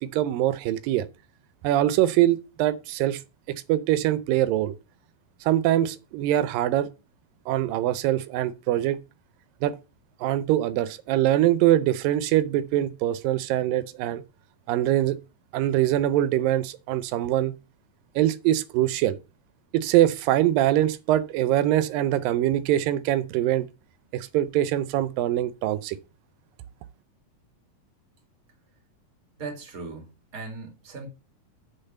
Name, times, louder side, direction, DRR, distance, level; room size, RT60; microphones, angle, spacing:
voice 1, 0.0-1.1 1.6-3.2 3.5-4.8 5.4-6.9 7.5-9.0 9.6-9.8 10.2-14.2 14.7-15.2 15.5-17.6 18.2-19.2 19.7-23.7 24.1-26.0, right 13 dB, 85° right, 2.4 m, -23 dB
voice 2, 29.4-31.1, right 4 dB, 30° right, 2.3 m, -38 dB
6.6 x 6.1 x 7.0 m
omnidirectional pair, 3.9 m